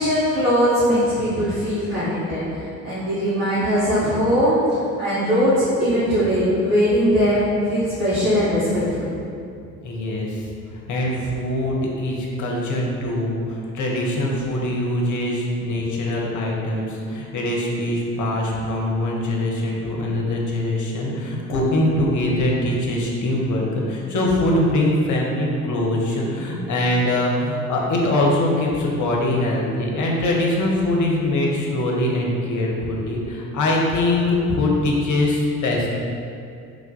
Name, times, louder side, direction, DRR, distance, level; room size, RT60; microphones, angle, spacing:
voice 1, 0.0-9.1, equal, 80° right, -16 dB, 1.3 m, -20 dB
voice 2, 9.8-10.4 10.7-35.9, left 1 dB, 45° left, -2 dB, 0.8 m, -22 dB
3.2 x 2.4 x 3.8 m, 2.4 s
figure-of-eight pair, 50°, 43 cm